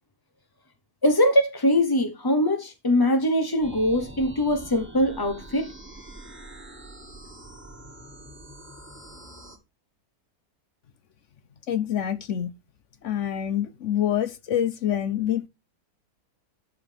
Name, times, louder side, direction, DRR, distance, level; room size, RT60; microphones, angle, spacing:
voice 1, 1.0-5.7, left 1 dB, 20° left, 0.6 m, -22 dB
sound 1, 3.6-9.6, right 1 dB, 10° right, 1.6 m, -44 dB
voice 2, 11.7-12.5 13.0-15.5, left 10 dB, 60° left, 0.9 m, -26 dB
10.5 x 7.2 x 3.3 m
omnidirectional pair, 1.6 m